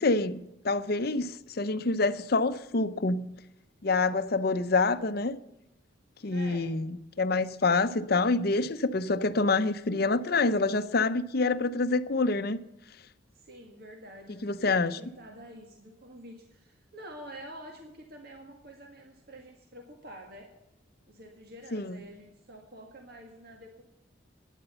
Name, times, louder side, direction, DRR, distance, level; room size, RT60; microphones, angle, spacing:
voice 1, 0.0-3.3 3.8-5.4 6.2-12.6 14.4-15.0 21.7-22.0, left 3 dB, 50° left, 0.7 m, -27 dB
voice 2, 6.2-6.7 13.3-20.5 21.1-23.8, right 1 dB, 55° right, 1.8 m, -48 dB
12.0 x 10.0 x 6.8 m
head